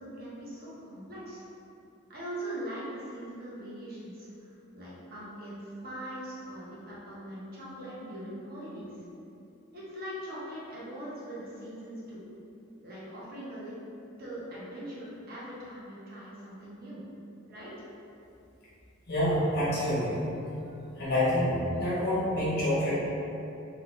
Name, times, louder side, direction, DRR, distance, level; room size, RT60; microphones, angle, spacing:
voice 1, 0.0-1.4 2.1-8.9 9.7-12.2 12.8-13.7 14.2-17.0 17.5-17.7, right 1 dB, 50° right, -8 dB, 1.0 m, -41 dB
voice 2, 19.1-20.3 21.0-22.9, left 1 dB, 50° left, -9 dB, 1.3 m, -27 dB
3.6 x 3.2 x 3.7 m, 2.8 s
head